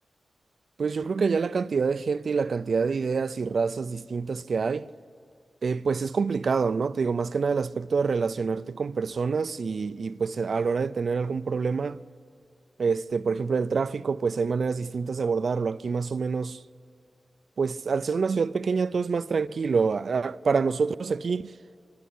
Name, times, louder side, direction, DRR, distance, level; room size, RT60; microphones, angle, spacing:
voice 1, 0.8-4.9 5.6-12.0 12.8-16.6 17.6-21.4, right 5 dB, 60° right, 0.4 m, -26 dB
26.0 x 11.5 x 10.0 m
wide cardioid pair, 120°, 0 cm